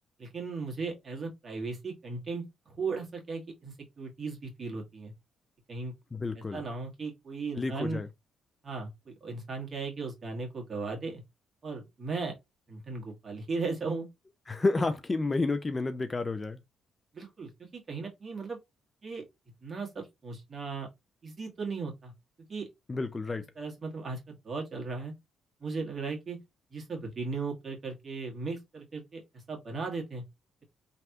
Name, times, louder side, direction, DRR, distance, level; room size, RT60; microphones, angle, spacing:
voice 1, 0.2-5.1 5.7-5.9 6.4-8.0 8.6-11.2 11.6-12.3 12.7-14.1 17.1-18.6 19.0-19.2 19.6-20.9 21.2-22.1 22.5-22.7 23.6-25.1 25.6-26.4 26.7-29.2 29.5-30.2, right 4 dB, 40° right, 1.5 m, -37 dB
voice 2, 6.1-6.6 7.6-8.1 14.5-16.6 22.9-23.5, left 3 dB, 25° left, 0.3 m, -30 dB
3.3 x 2.7 x 2.3 m
cardioid pair, 90°, 0 cm